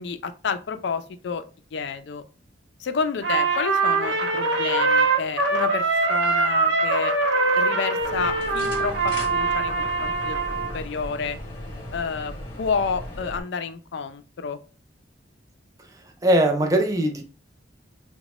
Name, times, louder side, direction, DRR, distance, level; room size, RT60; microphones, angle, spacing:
voice 1, 0.0-1.4 1.7-2.2 2.8-7.1 7.6-10.4 10.7-11.4 11.9-12.3 12.6-14.6, left 5 dB, 65° left, 0.4 m, -29 dB
Trumpet, 3.2-10.8, right 3 dB, 80° right, 1.0 m, -23 dB
sound 1, 8.0-13.4, left 1 dB, 25° left, 0.9 m, -37 dB
voice 2, 16.2-17.2, right 1 dB, 20° right, 0.5 m, -20 dB
3.8 x 2.1 x 3.0 m
head